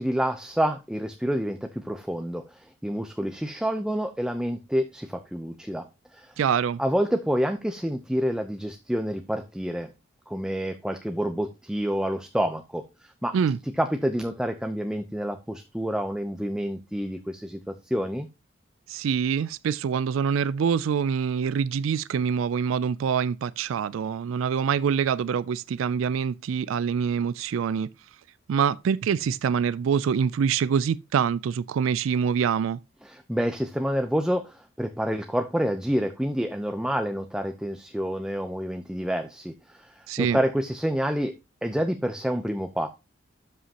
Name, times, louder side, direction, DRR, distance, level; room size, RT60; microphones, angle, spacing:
voice 1, 0.0-5.9 6.1-6.3 6.8-9.9 10.3-13.4 13.8-18.3 33.0-41.3 41.6-42.9, equal, 5° right, 0.6 m, -28 dB
voice 2, 6.4-6.8 13.3-13.6 18.9-27.9 28.5-32.8 40.1-40.4, right 7 dB, 90° right, 0.3 m, -25 dB
12.5 x 5.6 x 2.8 m
head